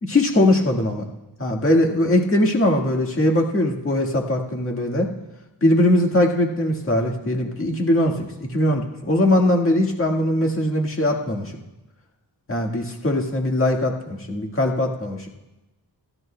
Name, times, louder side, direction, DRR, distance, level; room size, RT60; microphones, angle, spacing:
voice 1, 0.0-1.0 1.4-5.1 5.6-11.5 12.5-15.3, left 1 dB, 30° left, 1 dB, 1.7 m, -20 dB
28.5 x 11.0 x 2.2 m, 1.0 s
wide cardioid pair, 135°, 44 cm